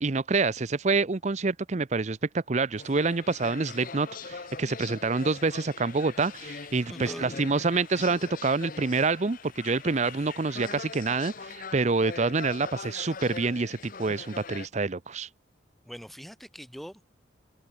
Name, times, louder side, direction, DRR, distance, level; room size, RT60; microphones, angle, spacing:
voice 1, 0.0-15.3, right 3 dB, 35° right, 0.6 m, -27 dB
sound 1, 2.8-14.7, left 5 dB, 45° left, 0.8 m, -42 dB
voice 2, 6.8-7.8 15.8-17.2, equal, ahead, 0.8 m, -43 dB
head